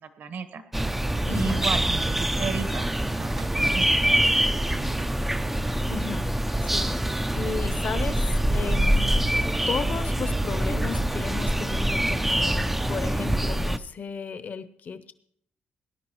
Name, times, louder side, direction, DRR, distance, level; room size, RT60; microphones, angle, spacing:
voice 1, 0.2-0.6 1.3-4.8, right 5 dB, 60° right, 9 dB, 1.3 m, -34 dB
sound 1, 0.7-13.8, right 1 dB, 5° right, 0.4 m, -25 dB
voice 2, 1.3-1.7 5.9-6.4 6.6-9.3 9.7-15.1, left 5 dB, 45° left, 12 dB, 0.8 m, -35 dB
19.0 x 11.0 x 3.0 m, 0.64 s
wide cardioid pair, 160°, 4 cm